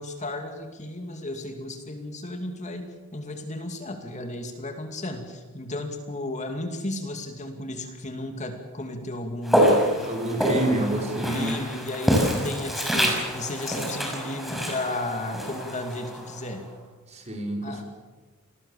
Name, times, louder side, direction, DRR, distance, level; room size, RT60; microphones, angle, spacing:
voice 1, 0.0-2.9 3.1-10.1 10.6-10.9 11.3-16.6 17.6-17.8, left 1 dB, 35° left, 5 dB, 2.5 m, -34 dB
Walk footsteps, 9.4-16.6, equal, ahead, 6.0 m, -26 dB
voice 2, 10.0-11.5 17.1-17.8, right 1 dB, 30° right, 1 dB, 5.2 m, -28 dB
28.0 x 20.0 x 7.3 m, 1.3 s
head